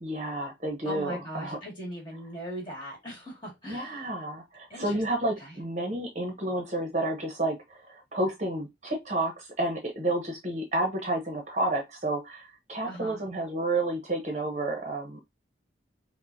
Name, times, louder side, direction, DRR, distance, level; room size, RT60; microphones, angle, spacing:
voice 1, 0.0-1.6 3.7-15.2, right 2 dB, 35° right, 0.8 m, -30 dB
voice 2, 0.8-4.0 4.7-5.0 5.4-5.6 12.8-13.2, equal, 25° left, 1.9 m, -39 dB
5.3 x 2.2 x 2.6 m
head